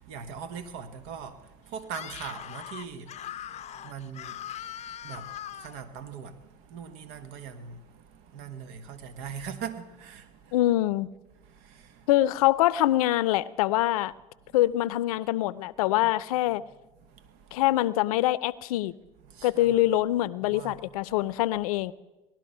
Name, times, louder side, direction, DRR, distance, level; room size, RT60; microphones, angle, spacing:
voice 1, 0.0-10.6 11.3-12.1 14.4-14.6 16.0-16.1 16.4-16.7 17.0-17.6 19.2-19.9 20.4-21.3, right 7 dB, 70° right, 1.3 m, -42 dB
Screaming, 1.9-5.8, left 11 dB, 40° left, 0.5 m, -40 dB
voice 2, 10.5-11.1 12.1-14.1 14.5-16.6 17.5-18.9 19.4-21.9, left 15 dB, 80° left, 0.5 m, -24 dB
18.5 x 12.0 x 5.5 m
hypercardioid pair, 75°, 18 cm